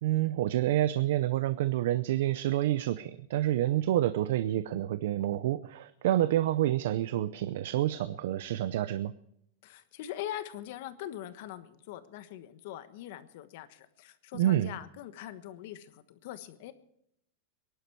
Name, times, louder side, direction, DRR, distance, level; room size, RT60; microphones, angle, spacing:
voice 1, 0.0-9.1 14.3-14.7, right 13 dB, 65° right, 14 dB, 0.6 m, -28 dB
voice 2, 9.6-16.7, left 12 dB, 55° left, 12 dB, 1.2 m, -42 dB
23.0 x 11.5 x 4.7 m, 0.74 s
supercardioid pair, 165°, 0 cm